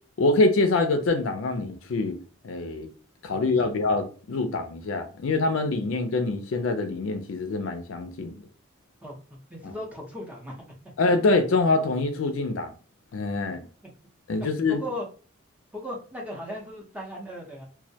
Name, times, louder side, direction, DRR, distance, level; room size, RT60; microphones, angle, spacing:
voice 1, 0.2-2.2 2.4-2.9 3.2-8.3 9.6-9.7 11.0-12.8 13.1-13.6 14.3-14.8, left 3 dB, 70° left, 0.4 m, -25 dB
voice 2, 3.3-3.7 9.0-9.2 9.5-10.6 13.6-13.7 14.4-15.0 15.7-17.7, left 1 dB, 5° right, 0.6 m, -37 dB
2.2 x 2.1 x 2.6 m
head